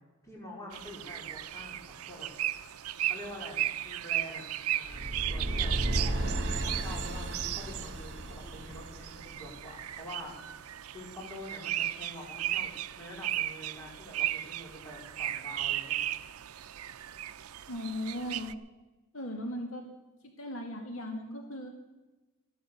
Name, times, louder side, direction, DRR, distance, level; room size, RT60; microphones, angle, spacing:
voice 1, 0.2-2.3 3.0-16.0, left 1 dB, 15° left, -3 dB, 4.2 m, -46 dB
sound 1, 0.7-18.5, right 13 dB, 80° right, 0.6 m, -36 dB
sound 2, 4.9-9.9, right 1 dB, 50° right, 1.8 m, -34 dB
voice 2, 17.7-18.5 19.1-19.8 20.2-21.7, left 1 dB, 65° left, 3 dB, 2.0 m, -37 dB
14.5 x 11.5 x 6.5 m, 1.1 s
head